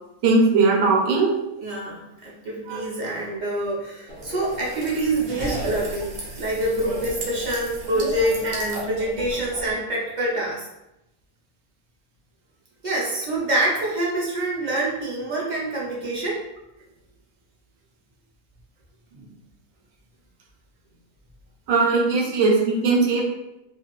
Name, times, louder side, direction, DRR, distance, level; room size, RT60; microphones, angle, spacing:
voice 1, 0.2-1.3 2.7-2.8 21.7-23.2, right 3 dB, 80° right, 0 dB, 1.1 m, -19 dB
voice 2, 1.6-10.7 12.8-16.4 19.1-19.3, right 1 dB, 45° right, -5 dB, 0.6 m, -26 dB
sound 1, 4.1-9.7, right 1 dB, 60° right, 1.0 m, -34 dB
2.6 x 2.4 x 3.0 m, 0.91 s
omnidirectional pair, 1.4 m